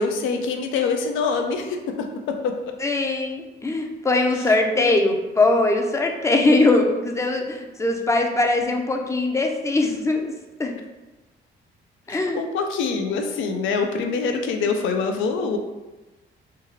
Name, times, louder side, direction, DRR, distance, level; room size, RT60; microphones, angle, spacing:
voice 1, 0.0-2.6 4.4-4.9 12.1-15.6, left 4 dB, 80° left, 5 dB, 0.5 m, -25 dB
voice 2, 2.8-10.3 10.6-10.7 12.1-12.4, left 2 dB, 15° left, 2 dB, 0.5 m, -21 dB
3.4 x 2.3 x 3.1 m, 1.1 s
cardioid pair, 90°, 20 cm